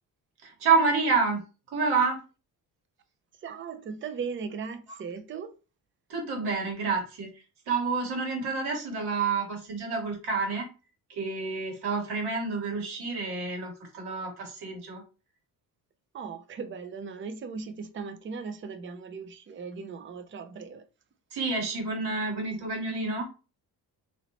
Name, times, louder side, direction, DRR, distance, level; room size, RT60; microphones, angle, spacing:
voice 1, 0.4-1.4 1.7-2.2 4.9-5.0 6.1-7.3 7.7-10.7 11.1-15.0 21.3-23.3, right 4 dB, 85° right, 1.8 m, -28 dB
voice 2, 3.4-5.5 16.1-20.9, right 5 dB, 30° right, 0.5 m, -38 dB
3.1 x 3.0 x 4.0 m
cardioid pair, 155°, 38 cm